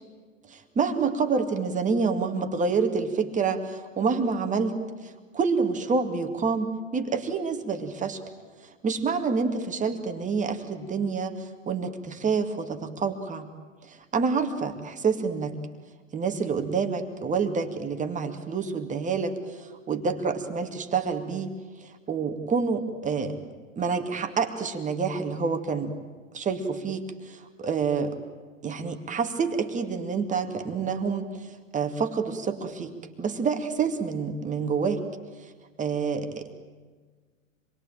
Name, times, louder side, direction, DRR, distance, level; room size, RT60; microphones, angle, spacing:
voice 1, 0.5-4.8 5.0-8.2 8.8-13.5 13.9-15.6 16.1-21.5 21.8-23.4 23.8-25.9 26.3-28.2 28.6-35.0 35.4-35.5 35.8-36.5, right 5 dB, 20° right, 6 dB, 2.3 m, -28 dB
27.0 x 22.0 x 9.0 m, 1.4 s
hypercardioid pair, 110°, 40 cm